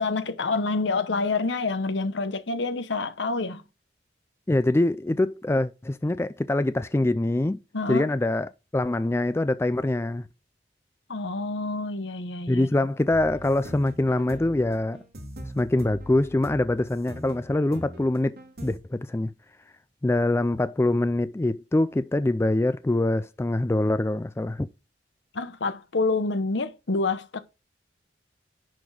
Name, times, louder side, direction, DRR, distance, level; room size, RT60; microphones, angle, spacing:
voice 1, 0.0-3.6 7.7-8.1 11.1-12.7 25.3-27.4, left 3 dB, 80° left, 1.0 m, -27 dB
voice 2, 4.5-7.6 7.9-10.3 12.5-15.0 15.6-18.4 18.6-19.3 20.0-24.7, left 2 dB, 15° left, 0.3 m, -24 dB
sound 1, 13.1-18.8, equal, 55° right, 2.9 m, -42 dB
10.5 x 4.3 x 4.8 m
head